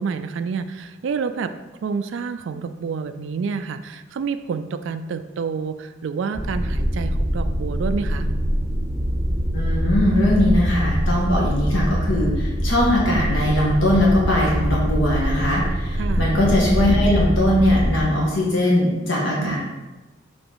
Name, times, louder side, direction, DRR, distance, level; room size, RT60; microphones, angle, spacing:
voice 1, 0.0-1.5 1.8-8.3 16.0-16.3 19.4-19.6, right 5 dB, 70° right, 9 dB, 0.3 m, -28 dB
sound 1, 6.4-18.0, equal, 25° right, 0.7 m, -23 dB
voice 2, 9.5-19.6, left 1 dB, 70° left, -4 dB, 1.5 m, -20 dB
6.8 x 3.9 x 3.9 m, 1.1 s
head